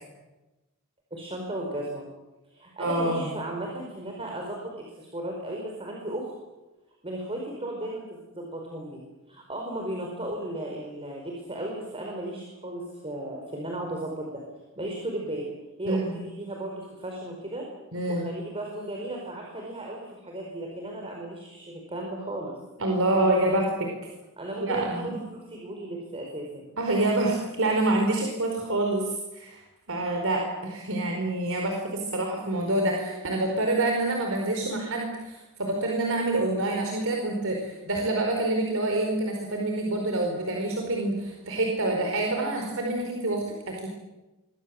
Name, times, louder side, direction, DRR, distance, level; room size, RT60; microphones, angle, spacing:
voice 1, 1.1-2.1 2.5-6.3 7.0-9.0 9.3-14.4 14.8-15.5 15.8-17.6 18.1-22.5 23.1-23.6 24.4-26.6, right 1 dB, 25° right, 0 dB, 4.9 m, -35 dB
voice 2, 2.8-3.3 15.9-16.2 17.9-18.3 22.8-23.6 24.6-25.1 26.8-29.6 29.9-43.9, right 2 dB, 65° right, 1 dB, 4.7 m, -27 dB
27.5 x 23.5 x 7.9 m, 1.1 s
head